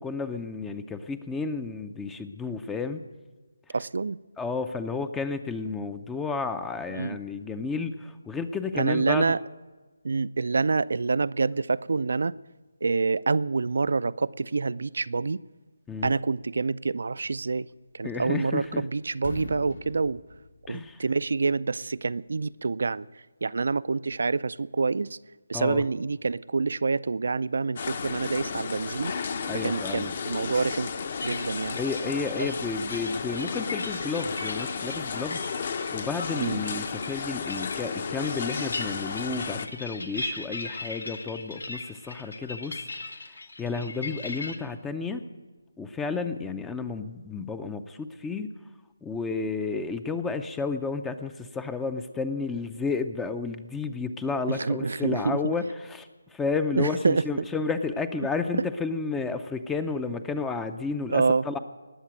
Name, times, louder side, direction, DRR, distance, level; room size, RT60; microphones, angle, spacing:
voice 1, 0.0-3.0 3.7-3.8 4.4-9.2 15.9-16.1 18.0-18.8 20.7-21.0 25.5-25.8 29.5-30.1 31.7-35.5 35.9-45.2 45.8-48.5 49.0-61.6, left 4 dB, 5° left, 0.5 m, -32 dB
voice 2, 3.7-4.2 6.9-7.2 8.7-9.4 10.0-12.3 12.8-15.4 16.0-17.7 17.9-20.2 20.7-25.2 25.5-29.1 29.6-30.9 31.2-31.8 32.4-32.5 36.4-36.6 54.5-55.4 56.8-57.5 61.1-61.4, right 4 dB, 65° right, 0.5 m, -27 dB
sound 1, 18.3-18.8 19.1-21.3, left 3 dB, 70° left, 2.0 m, -42 dB
sound 2, 27.8-39.7, left 5 dB, 45° left, 1.0 m, -33 dB
sound 3, 31.2-44.6, left 2 dB, 90° left, 2.1 m, -39 dB
19.0 x 7.3 x 9.1 m
figure-of-eight pair, 160°, 0 cm